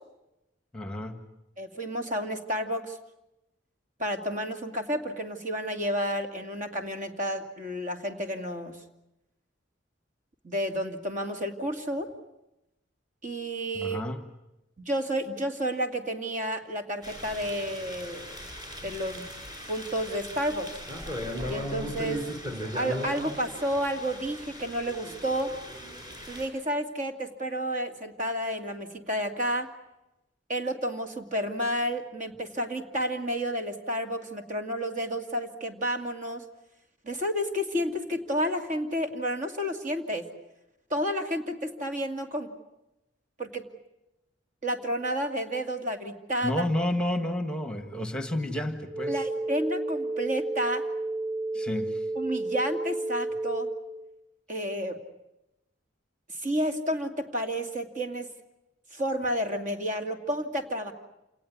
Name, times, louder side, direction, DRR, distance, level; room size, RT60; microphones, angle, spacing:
voice 1, 0.7-1.2 13.7-14.2 46.4-49.2 51.5-52.0, left 1 dB, 5° left, 7 dB, 1.6 m, -30 dB
voice 2, 1.6-3.0 4.0-8.8 10.4-12.1 13.2-14.0 14.8-18.3 18.8-19.3 19.7-20.7 21.5-22.2 22.6-25.5 26.3-29.7 30.5-36.4 37.0-40.3 40.9-42.5 43.4-43.6 44.6-46.6 49.1-50.8 52.2-53.7 54.5-55.0 56.4-58.3 58.9-60.9, equal, 40° right, 5 dB, 2.4 m, -31 dB
sound 1, 17.0-26.5, equal, 20° right, 5.4 m, -38 dB
sound 2, 48.9-53.9, right 2 dB, 80° right, 2.1 m, -31 dB
28.0 x 19.0 x 9.7 m, 0.92 s
head